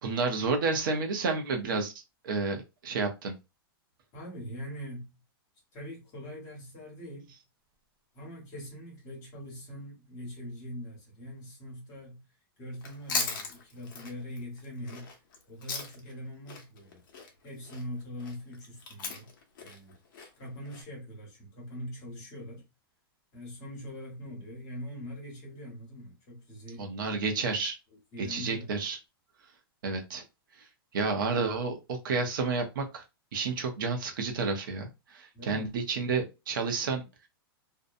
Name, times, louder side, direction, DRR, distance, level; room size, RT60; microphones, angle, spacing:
voice 1, 0.0-1.9 2.2-3.3 26.8-27.8 28.2-29.0 29.8-30.2 30.9-33.0 33.3-37.0, right 4 dB, 55° right, 0.7 m, -30 dB
voice 2, 4.1-5.1 5.7-7.3 8.1-12.2 12.6-15.1 15.5-17.0 17.4-19.3 19.6-20.0 20.4-22.6 23.3-27.3 28.1-28.8 35.3-35.7, equal, 25° left, 1.2 m, -42 dB
Chewing mastication, 12.7-16.2 16.5-20.8, left 5 dB, 55° left, 0.8 m, -38 dB
2.6 x 2.2 x 2.5 m
supercardioid pair, 175°, 13 cm